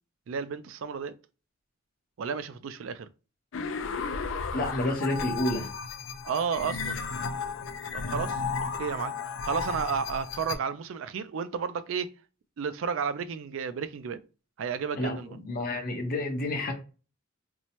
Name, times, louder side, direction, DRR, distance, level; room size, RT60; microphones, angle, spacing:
voice 1, 0.3-1.1 2.2-3.1 6.2-7.0 7.9-8.4 8.8-12.1 12.6-14.2 14.6-15.3, right 6 dB, 75° right, 0.4 m, -32 dB
sound 1, 3.5-10.6, left 5 dB, 70° left, 0.4 m, -34 dB
voice 2, 4.5-5.7 15.0-15.2 15.5-16.7, left 1 dB, 45° left, 0.8 m, -29 dB
4.4 x 2.1 x 2.8 m
head